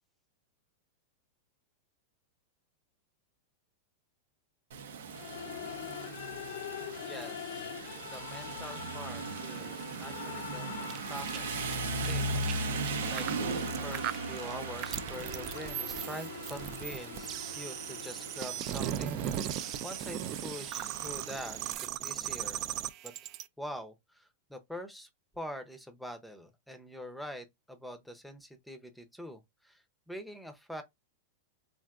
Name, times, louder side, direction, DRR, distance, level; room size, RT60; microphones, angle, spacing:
Rain, 4.7-21.8, right 3 dB, 85° right, 0.6 m, -38 dB
sound 1, 5.1-18.9, left 9 dB, 70° left, 0.5 m, -45 dB
voice 1, 7.0-7.7 8.0-11.7 12.1-12.3 13.1-19.6 19.8-21.6 22.0-22.6 23.0-23.1 23.6-25.1 25.3-30.8, equal, ahead, 0.6 m, -45 dB
sound 2, 10.8-23.4, right 11 dB, 40° right, 0.3 m, -38 dB
3.4 x 2.5 x 2.4 m
hypercardioid pair, 130°, 0 cm